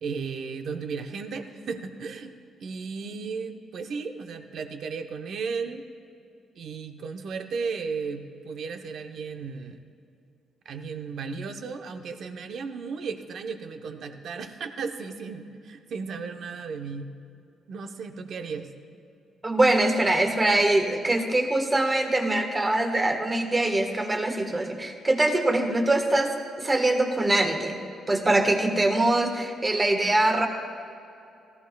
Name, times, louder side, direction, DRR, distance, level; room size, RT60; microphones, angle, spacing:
voice 1, 0.0-2.3 2.6-5.8 6.6-9.8 10.6-17.1 17.7-18.7, right 5 dB, 65° right, 6 dB, 0.9 m, -35 dB
voice 2, 19.4-27.8 28.1-30.5, right 2 dB, 20° right, 4 dB, 1.4 m, -23 dB
18.0 x 14.5 x 2.3 m, 2.6 s
cardioid pair, 90°, 0 cm